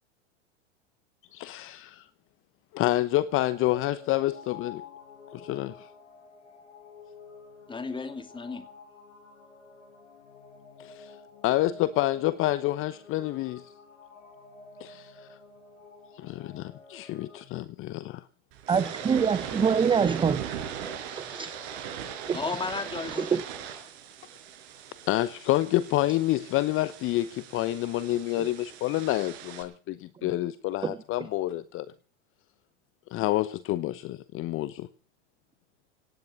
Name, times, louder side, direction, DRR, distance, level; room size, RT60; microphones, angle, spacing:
voice 1, 1.3-2.1 2.7-4.8 5.3-5.9 10.8-11.1 11.4-13.6 14.8-15.3 16.2-18.2 25.1-31.9 33.1-34.9, left 15 dB, 35° left, 0.9 m, -28 dB
sound 1, 3.3-17.4, left 4 dB, 80° left, 5.2 m, -50 dB
voice 2, 7.7-8.7 21.3-21.5 22.3-23.4, left 4 dB, 15° left, 2.6 m, -34 dB
sound 2, 18.5-29.6, right 8 dB, 55° right, 5.3 m, -39 dB
voice 3, 18.7-20.4 21.1-21.5 22.3-22.6 23.1-23.4 30.8-31.0, right 6 dB, 15° right, 0.8 m, -25 dB
17.5 x 10.5 x 7.0 m
hypercardioid pair, 100°, 36 cm